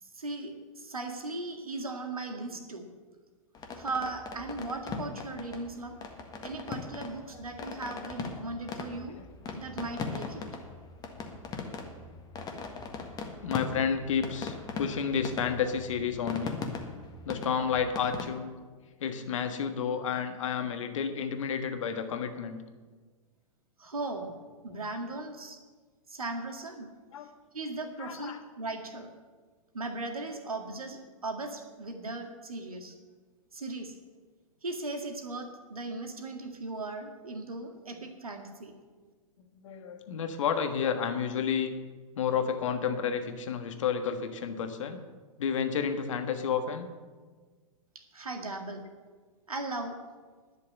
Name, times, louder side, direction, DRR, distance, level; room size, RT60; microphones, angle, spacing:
voice 1, 0.0-2.9 3.7-6.0 6.4-9.2 9.5-10.4 23.8-24.3 24.6-25.6 26.1-26.9 27.5-29.1 29.7-33.0 33.5-34.0 34.6-38.7 48.0-48.9 49.5-50.0, right 2 dB, 85° right, 4 dB, 1.9 m, -37 dB
sound 1, 3.5-18.2, left 4 dB, 20° left, 1.6 m, -40 dB
voice 2, 13.4-16.6 17.2-18.5 19.0-22.6 27.1-27.3 28.0-28.4 39.6-41.7 42.2-45.0 45.4-46.9, left 7 dB, 60° left, 7 dB, 1.4 m, -31 dB
11.0 x 6.6 x 9.2 m, 1.4 s
figure-of-eight pair, 110°, 18 cm